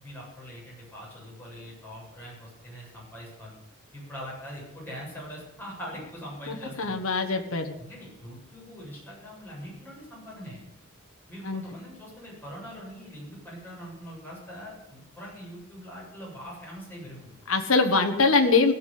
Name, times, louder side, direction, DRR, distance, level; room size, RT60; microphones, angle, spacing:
voice 1, 0.0-3.6 3.9-7.0 7.8-10.6 11.3-17.3, equal, 10° left, -5 dB, 7.8 m, -42 dB
voice 2, 6.5-7.7 11.4-11.6 17.5-18.7, left 3 dB, 75° left, 4 dB, 1.4 m, -23 dB
18.0 x 7.4 x 8.4 m, 0.84 s
head